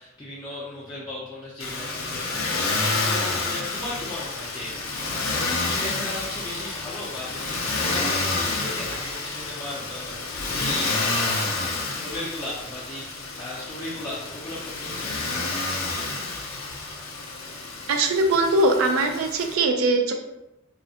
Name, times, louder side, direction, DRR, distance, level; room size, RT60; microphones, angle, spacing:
voice 1, 0.0-4.7 5.1-11.2 11.9-15.7, left 1 dB, 15° left, -9 dB, 0.4 m, -37 dB
Motor vehicle (road), 1.6-19.5, left 3 dB, 70° left, 0.5 m, -29 dB
voice 2, 17.9-20.1, right 2 dB, 70° right, 4 dB, 0.4 m, -21 dB
2.4 x 2.1 x 2.6 m, 0.91 s
head